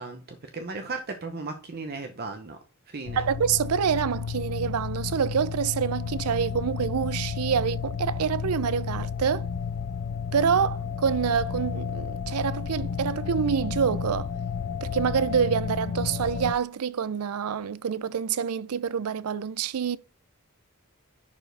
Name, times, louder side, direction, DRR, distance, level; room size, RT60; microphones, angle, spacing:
voice 1, 0.0-2.6 2.9-3.2, right 3 dB, 45° right, 0.8 m, -36 dB
sound 1, 3.1-16.5, left 6 dB, 50° left, 0.4 m, -32 dB
voice 2, 3.2-9.5 10.3-14.3 14.8-20.0, right 7 dB, 85° right, 0.5 m, -26 dB
10.5 x 4.6 x 3.4 m
head